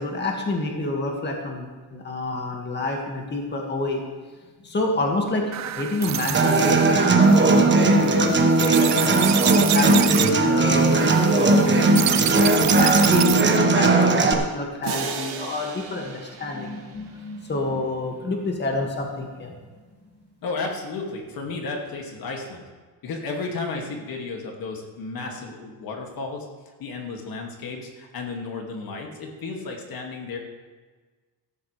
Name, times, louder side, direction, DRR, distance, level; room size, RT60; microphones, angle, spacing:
voice 1, 0.0-4.0 4.6-19.6, left 2 dB, 25° left, 1 dB, 2.1 m, -28 dB
sound 1, 5.5-13.6, right 11 dB, 45° right, 0.6 m, -28 dB
Human voice / Acoustic guitar, 6.3-14.3, right 3 dB, 25° right, 1.4 m, -18 dB
sound 2, 14.8-17.6, right 6 dB, 75° right, 2.2 m, -36 dB
voice 2, 20.4-22.6 23.0-26.5 26.8-30.4, left 3 dB, 60° left, 1 dB, 2.4 m, -33 dB
15.0 x 13.0 x 3.4 m, 1.4 s
cardioid pair, 115°, 40 cm